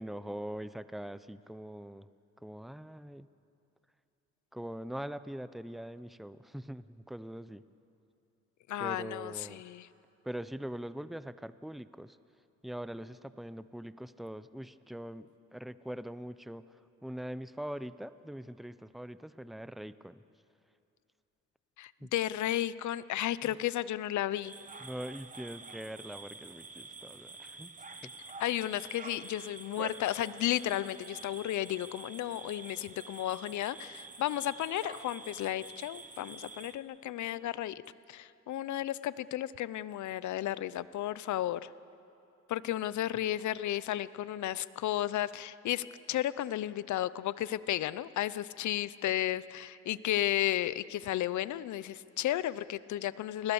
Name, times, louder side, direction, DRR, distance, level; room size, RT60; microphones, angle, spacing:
voice 1, 0.0-2.1 2.4-3.3 4.5-7.6 8.8-9.6 10.2-12.2 12.6-20.2 22.0-22.1 23.4-23.6 24.8-28.1, right 1 dB, ahead, 14 dB, 0.7 m, -42 dB
voice 2, 8.7-9.9 21.8-24.5 28.4-37.8 38.1-41.7 42.5-53.5, left 13 dB, 70° left, 17 dB, 0.8 m, -33 dB
sound 1, 24.4-36.8, right 3 dB, 25° right, 1.5 m, -48 dB
29.0 x 21.0 x 7.1 m, 2.7 s
cardioid pair, 90°, 30 cm